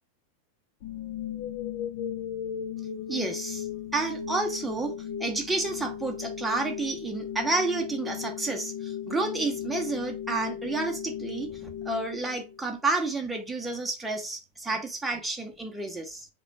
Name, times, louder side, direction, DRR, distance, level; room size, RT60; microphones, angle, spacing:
sound 1, 0.8-12.8, left 9 dB, 50° left, 0.5 m, -36 dB
voice 1, 3.1-3.7 3.9-4.9 5.2-16.3, right 3 dB, 10° right, 0.8 m, -30 dB
4.1 x 2.3 x 4.1 m
figure-of-eight pair, 90°, 0 cm